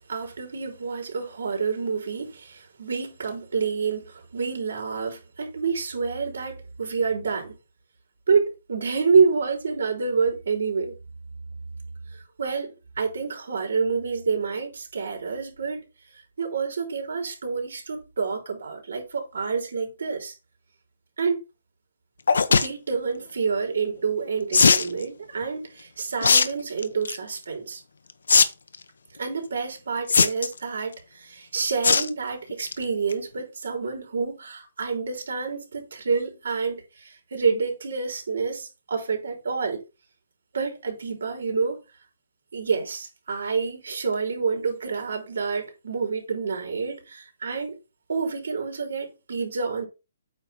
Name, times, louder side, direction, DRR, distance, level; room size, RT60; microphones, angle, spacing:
voice 1, 0.1-7.5 8.3-10.9 12.1-15.9 16.1-20.3 21.2-21.4 22.5-27.8 29.2-39.8 40.5-41.8 42.5-47.8 48.1-49.9, right 5 dB, 70° right, 3.4 m, -28 dB
sound 1, 22.3-22.7 24.5-24.9 26.2-26.5 26.8-27.2 28.3-28.4 28.7-28.8 30.1-30.6 31.8-32.1 32.5-32.7 33.1-33.2 33.4-33.5, left 5 dB, 90° left, 0.9 m, -18 dB
8.8 x 3.3 x 5.7 m
hypercardioid pair, 175°, 0 cm